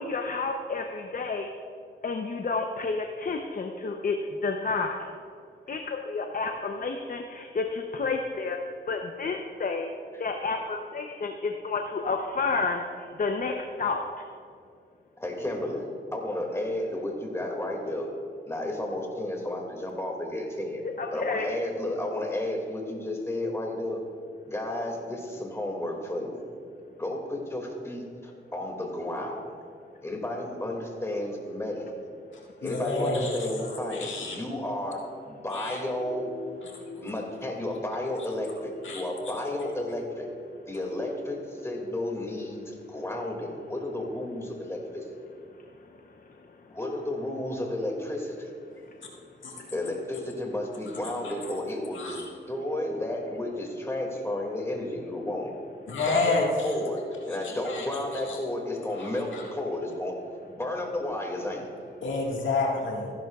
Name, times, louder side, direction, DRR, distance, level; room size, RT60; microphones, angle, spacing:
voice 1, 0.0-1.5 2.0-5.1 5.7-8.6 8.9-9.9 10.2-14.0 21.0-21.5 45.9-46.2, left 4 dB, 45° left, 3 dB, 0.8 m, -30 dB
voice 2, 15.2-15.8 16.1-18.1 18.5-20.8 21.1-24.0 24.5-26.4 27.0-29.4 30.0-31.8 32.6-35.0 35.3-36.3 37.0-40.3 40.7-45.0 46.7-48.5 49.7-55.5 56.1-56.3 56.6-57.0 57.3-60.1 60.5-61.7, left 1 dB, 15° left, 0 dB, 2.3 m, -32 dB
voice 3, 32.6-34.4 35.5-37.1 38.8-39.0 49.4-49.5 51.2-51.3 51.9-52.2 55.9-56.7 57.4-57.9 58.1-58.4 59.0-59.4 62.0-63.1, left 3 dB, 80° left, -2 dB, 1.8 m, -30 dB
15.0 x 10.5 x 2.4 m, 2.3 s
cardioid pair, 65°, 20 cm